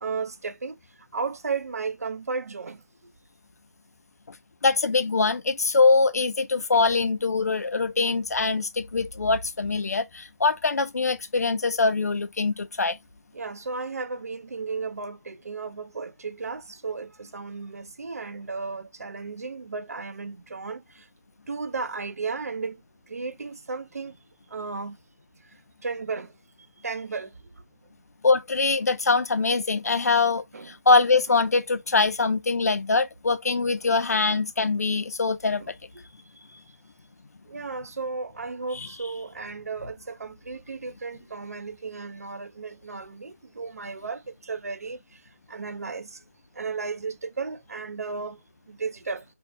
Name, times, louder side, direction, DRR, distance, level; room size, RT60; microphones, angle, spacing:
voice 1, 0.0-0.7 1.1-2.8 6.7-6.8 8.1-8.2 13.3-20.8 21.5-22.8 23.1-24.1 24.5-25.0 25.8-26.3 26.8-27.3 30.5-30.7 35.6-35.7 36.5-36.6 37.5-45.0 45.5-46.2 46.6-48.4 48.7-49.2, right 4 dB, 70° right, 0.4 m, -34 dB
voice 2, 4.6-13.0 28.2-35.7, left 4 dB, 70° left, 0.4 m, -23 dB
2.6 x 2.2 x 2.4 m
figure-of-eight pair, 170°, 9 cm